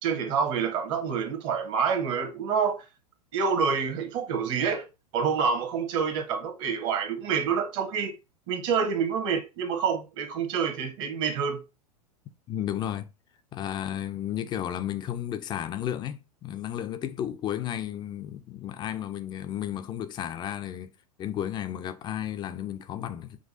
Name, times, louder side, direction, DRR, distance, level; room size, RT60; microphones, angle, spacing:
voice 1, 0.0-2.8 3.3-4.8 5.1-8.1 8.5-11.6, right 6 dB, 45° right, 1.1 m, -27 dB
voice 2, 12.5-13.1 13.5-20.9 21.2-23.4, left 10 dB, 20° left, 0.4 m, -33 dB
6.0 x 2.3 x 2.6 m
figure-of-eight pair, 95°, 20 cm